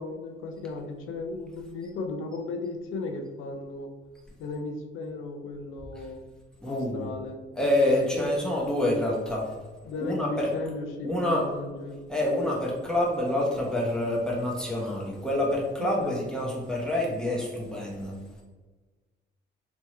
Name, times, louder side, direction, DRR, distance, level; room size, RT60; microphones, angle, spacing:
voice 1, 0.0-3.9 4.4-6.2 6.7-7.7 8.1-8.3 9.8-12.0 15.8-16.1, left 3 dB, 85° left, 4 dB, 0.6 m, -36 dB
voice 2, 6.6-7.1 7.6-9.5 10.0-10.5 11.0-11.4 12.1-18.1, left 1 dB, 5° left, -3 dB, 1.0 m, -27 dB
3.5 x 3.0 x 3.0 m, 1.3 s
cardioid pair, 90°, 20 cm